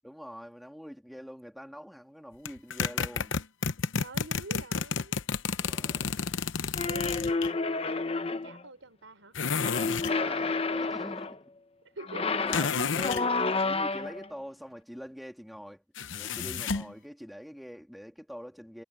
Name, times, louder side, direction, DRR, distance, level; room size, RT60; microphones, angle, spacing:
voice 1, 0.0-3.4 5.6-6.3 10.0-11.4 12.3-15.8 16.1-18.8, equal, ahead, 2.4 m, -44 dB
sound 1, 2.5-7.5 9.4-10.2 12.5-13.3 16.0-16.9, left 5 dB, 80° left, 0.8 m, -31 dB
voice 2, 4.0-5.2 6.9-9.4 11.9-12.7, right 2 dB, 85° right, 5.5 m, -46 dB
sound 2, 6.8-8.6 9.6-11.4 12.0-14.3, left 3 dB, 30° left, 0.7 m, -30 dB
head